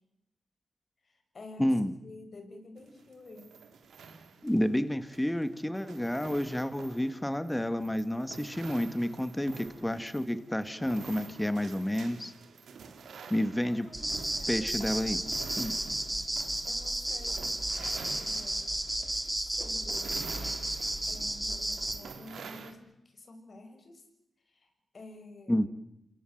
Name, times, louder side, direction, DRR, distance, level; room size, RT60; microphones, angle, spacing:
voice 1, 1.0-3.5 13.7-14.7 15.1-15.7 16.6-18.6 19.3-20.5 21.0-24.0 24.5-25.6, left 2 dB, 55° left, 6 dB, 6.8 m, -50 dB
voice 2, 1.6-1.9 4.4-12.3 13.3-13.9 14.5-15.2 15.6-15.7 25.5-25.7, left 1 dB, 10° left, 11 dB, 1.8 m, -30 dB
sound 1, 2.8-22.7, right 5 dB, 85° right, 3.2 m, -47 dB
sound 2, 13.9-22.0, right 1 dB, 10° right, 3.4 m, -33 dB
28.5 x 22.5 x 7.9 m, 0.87 s
cardioid pair, 60°, 0 cm